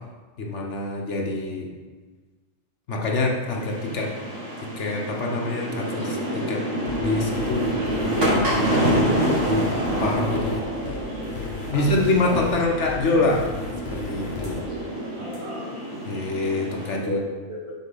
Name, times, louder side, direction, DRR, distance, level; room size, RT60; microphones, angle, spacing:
voice 1, 0.4-1.7 2.9-4.1 4.8-6.6 7.0-7.7 8.0-9.7 10.0-10.6 11.7-13.5 13.9-14.6 16.1-17.2, left 2 dB, 65° left, 0 dB, 1.2 m, -25 dB
sound 1, 3.5-17.0, right 1 dB, 70° right, 2.0 m, -27 dB
sound 2, 6.9-14.6, left 5 dB, 85° left, 1.4 m, -35 dB
voice 2, 9.9-10.3 11.7-11.9 12.2-12.5 15.2-15.7 17.0-17.7, left 1 dB, 25° right, -4 dB, 1.2 m, -33 dB
6.6 x 4.5 x 5.5 m, 1.4 s
omnidirectional pair, 1.3 m